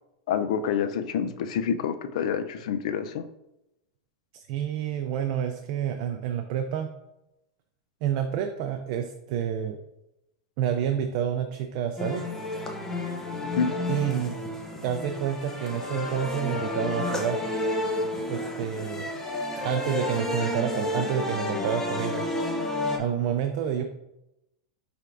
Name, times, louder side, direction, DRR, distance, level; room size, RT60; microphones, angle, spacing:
voice 1, 0.3-3.2 13.6-13.7, left 7 dB, 70° left, 10 dB, 0.4 m, -27 dB
voice 2, 4.3-6.9 8.0-9.8 10.6-12.3 13.9-14.4 14.8-17.4 18.3-19.1 19.6-22.3 23.0-23.8, right 9 dB, 55° right, 5 dB, 0.4 m, -29 dB
sound 1, 12.0-23.0, left 2 dB, 10° left, 0.7 m, -31 dB
5.7 x 3.3 x 2.5 m, 0.89 s
supercardioid pair, 130°, 4 cm